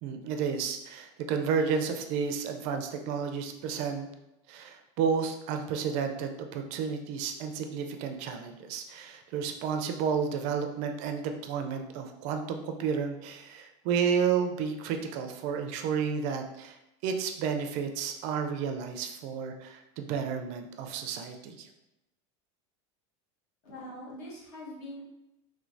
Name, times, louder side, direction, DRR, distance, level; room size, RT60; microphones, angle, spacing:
voice 1, 0.0-4.1 4.5-16.8 17.0-21.7, right 6 dB, 50° right, 6 dB, 0.4 m, -31 dB
voice 2, 23.6-25.0, left 1 dB, 60° left, -5 dB, 1.4 m, -43 dB
3.1 x 3.1 x 2.5 m, 0.92 s
supercardioid pair, 150°, 15 cm